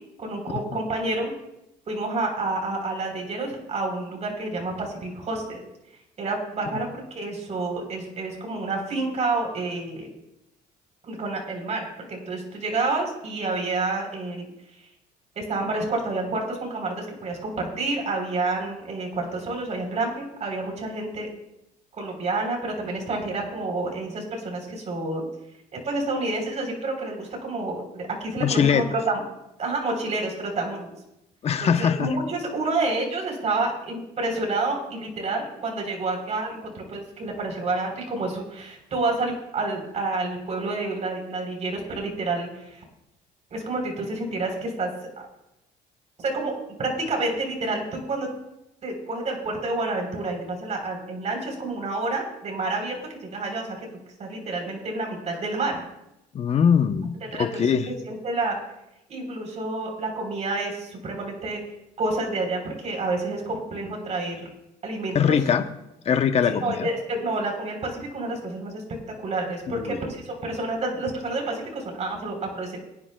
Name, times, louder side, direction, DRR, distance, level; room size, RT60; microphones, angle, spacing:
voice 1, 0.2-1.3 1.9-5.6 6.2-10.1 11.0-14.5 15.4-21.3 21.9-25.3 25.7-29.2 29.6-31.0 31.6-42.8 43.5-44.9 45.2-45.3 46.2-48.3 48.8-53.9 54.2-55.8 57.3-58.6 59.1-61.6 62.0-64.5 64.8-65.4 66.5-68.8 69.2-72.8, right 2 dB, 40° right, 2 dB, 3.7 m, -29 dB
voice 2, 28.4-28.8 31.4-32.1 56.3-57.9 65.1-65.6 66.0-66.9 69.7-70.0, left 7 dB, 40° left, 8 dB, 0.8 m, -22 dB
22.0 x 10.0 x 2.3 m, 0.89 s
cardioid pair, 110°, 17 cm